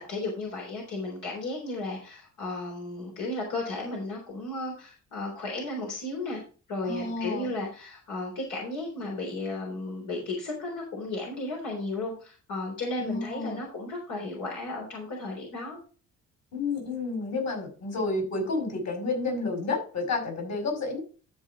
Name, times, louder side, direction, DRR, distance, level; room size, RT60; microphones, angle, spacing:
voice 1, 0.1-6.4 6.7-15.8, left 2 dB, 85° left, -1 dB, 3.7 m, -34 dB
voice 2, 6.8-7.5 13.0-13.6 16.5-21.0, left 3 dB, 65° left, 3 dB, 5.2 m, -30 dB
12.5 x 5.2 x 4.9 m, 0.38 s
cardioid pair, 90°, 30 cm